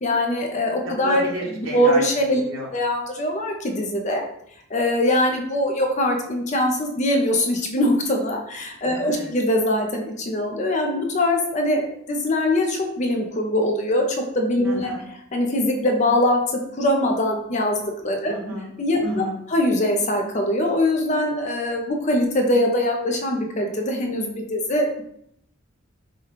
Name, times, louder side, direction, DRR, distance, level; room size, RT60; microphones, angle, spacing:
voice 1, 0.0-1.2 1.7-2.4 2.7-4.2 4.7-14.0 14.3-14.9 15.3-16.4 16.8-17.8 18.0-18.3 18.8-19.2 19.5-25.0, left 1 dB, 35° left, 2 dB, 0.5 m, -22 dB
voice 2, 0.8-2.0 2.3-2.7 8.9-9.3 14.6-15.0 18.3-18.7 19.0-19.3, equal, 80° right, -2 dB, 1.1 m, -30 dB
4.8 x 2.3 x 2.9 m, 0.72 s
head